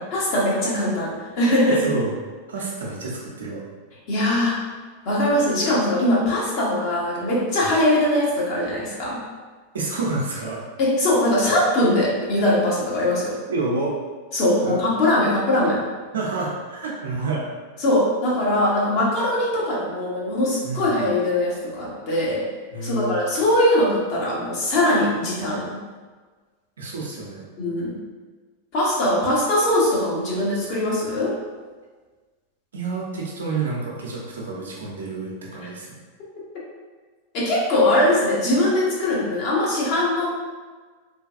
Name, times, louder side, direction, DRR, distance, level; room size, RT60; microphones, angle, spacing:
voice 1, 0.1-1.8 4.1-4.6 5.0-9.2 10.8-13.3 14.3-15.8 17.8-22.4 22.8-25.8 27.6-28.0 28.7-31.3 37.3-40.3, left 1 dB, 50° left, -5 dB, 1.1 m, -21 dB
voice 2, 1.7-2.1 2.5-3.6 9.7-10.6 13.5-14.0 14.6-14.8 16.1-17.5 20.6-20.9 22.7-23.2 26.8-27.4 32.7-35.9, right 3 dB, 75° right, -3 dB, 0.5 m, -28 dB
3.2 x 2.3 x 2.5 m, 1.4 s
hypercardioid pair, 95°, 0 cm